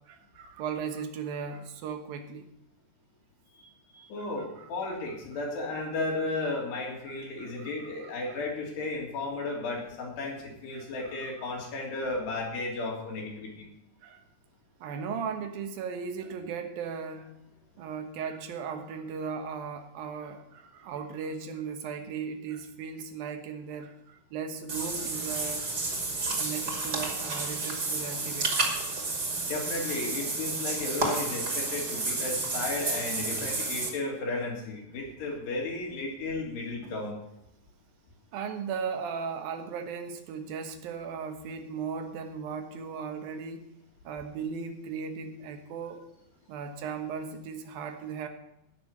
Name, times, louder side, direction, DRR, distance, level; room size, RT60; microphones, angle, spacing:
voice 1, 0.1-2.5 4.6-4.9 7.1-8.1 10.7-11.3 14.0-14.2 14.8-17.4 17.8-25.7 26.4-28.8 36.8-36.9 38.3-43.7 44.0-46.0 46.5-48.3, right 6 dB, 70° right, 6 dB, 2.9 m, -37 dB
voice 2, 3.6-13.7 29.4-37.2, left 2 dB, 80° left, -2 dB, 5.2 m, -34 dB
Water / Bathtub (filling or washing), 24.7-33.9, right 3 dB, 30° right, 2.3 m, -31 dB
17.5 x 6.2 x 7.2 m, 0.84 s
omnidirectional pair, 4.8 m